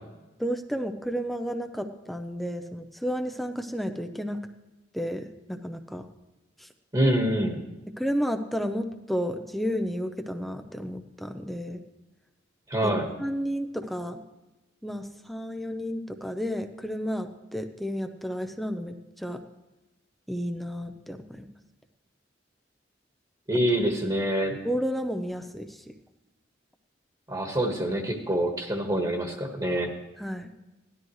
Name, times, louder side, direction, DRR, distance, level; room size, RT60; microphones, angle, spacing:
voice 1, 0.4-4.4 4.9-6.1 6.6-6.7 8.0-11.8 12.8-14.2 14.8-19.4 20.3-21.5 23.7-23.8 24.6-25.9 30.2-30.5, equal, ahead, 6 dB, 0.6 m, -32 dB
voice 2, 6.9-7.6 12.7-13.1 23.5-24.6 27.3-29.9, right 1 dB, 20° right, 2 dB, 1.5 m, -26 dB
17.5 x 13.0 x 3.2 m, 1.1 s
head